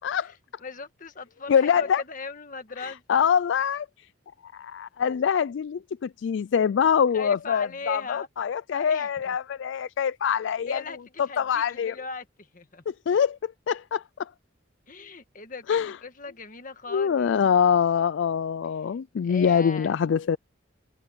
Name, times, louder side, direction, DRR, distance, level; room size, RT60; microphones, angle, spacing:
voice 1, 0.6-3.2 7.1-8.3 8.7-9.4 10.7-11.0 11.2-12.8 14.9-17.3 19.2-20.0, left 4 dB, 40° left, 1.7 m, -39 dB
voice 2, 1.5-2.0 2.8-4.1 4.4-10.8 11.4-11.9 12.9-14.3 15.7-16.0 16.9-20.4, left 7 dB, 65° left, 0.3 m, -24 dB
head